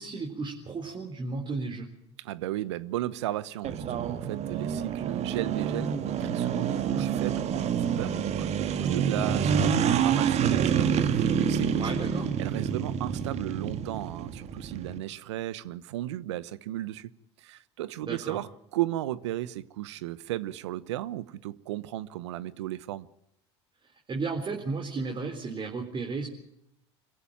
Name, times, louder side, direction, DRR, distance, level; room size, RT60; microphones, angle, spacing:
voice 1, 0.0-1.9 11.8-12.3 18.0-18.4 24.1-26.3, right 4 dB, 35° right, 4.0 m, -34 dB
voice 2, 2.2-11.9 12.4-17.1 17.4-23.1, right 14 dB, 80° right, 1.0 m, -35 dB
sound 1, 3.6-15.0, right 7 dB, 50° right, 1.9 m, -27 dB
25.5 x 15.5 x 8.9 m
hypercardioid pair, 80°, 15 cm